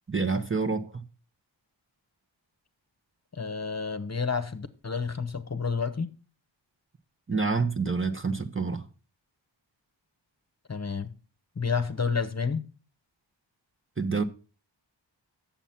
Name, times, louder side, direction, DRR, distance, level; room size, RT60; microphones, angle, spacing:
voice 1, 0.1-0.9 7.3-8.9 14.0-14.2, right 4 dB, 25° right, 0.9 m, -27 dB
voice 2, 3.3-6.1 10.7-11.1 11.6-12.6, left 5 dB, 35° left, 0.9 m, -30 dB
8.9 x 7.3 x 5.7 m
wide cardioid pair, 80°, 46 cm